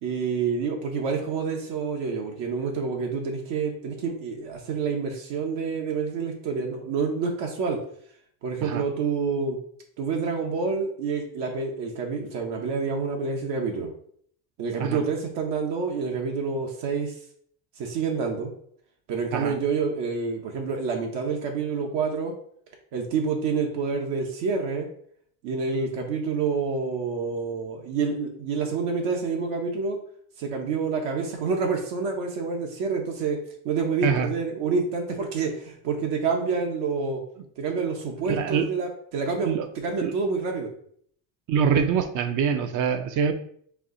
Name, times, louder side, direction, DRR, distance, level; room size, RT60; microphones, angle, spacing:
voice 1, 0.0-7.8 8.4-9.6 10.0-13.9 14.6-17.1 17.8-18.5 19.1-22.3 22.9-24.9 25.4-30.0 30.4-33.4 33.6-37.2 37.6-40.7, right 5 dB, 70° right, 1 dB, 1.0 m, -28 dB
voice 2, 38.3-38.7 39.4-39.7 40.0-40.1 41.5-43.3, right 7 dB, 45° right, 9 dB, 0.6 m, -24 dB
4.7 x 2.4 x 3.8 m, 0.62 s
cardioid pair, 120°, 44 cm